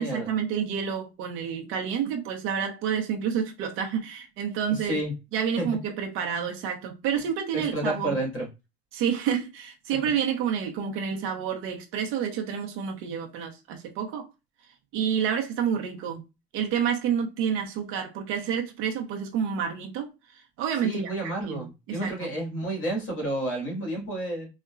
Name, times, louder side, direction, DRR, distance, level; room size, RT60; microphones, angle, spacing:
voice 1, 0.0-5.0 5.3-8.2 8.9-14.2 14.9-16.2 16.5-21.1 21.5-22.3, right 8 dB, 45° right, 0.6 m, -29 dB
voice 2, 4.7-5.1 5.6-5.7 7.5-8.5 9.9-10.0 20.8-24.5, right 1 dB, 45° left, 1.9 m, -30 dB
3.8 x 2.1 x 2.4 m
cardioid pair, 165°, 30 cm